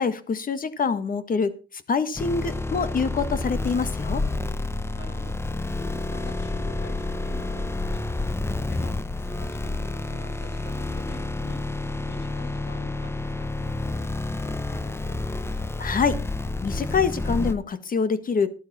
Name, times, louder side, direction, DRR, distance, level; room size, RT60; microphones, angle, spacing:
voice 1, 0.0-1.6 1.9-4.2 15.8-16.2 16.6-18.5, left 5 dB, 45° left, 11 dB, 1.6 m, -25 dB
sound 1, 2.2-17.5, left 2 dB, 10° left, 1.0 m, -29 dB
voice 2, 4.9-5.4 5.8-8.2 8.7-11.7 12.1-15.6, left 2 dB, 80° left, 1 dB, 5.5 m, -46 dB
12.5 x 12.0 x 4.3 m, 0.34 s
cardioid pair, 90°, 20 cm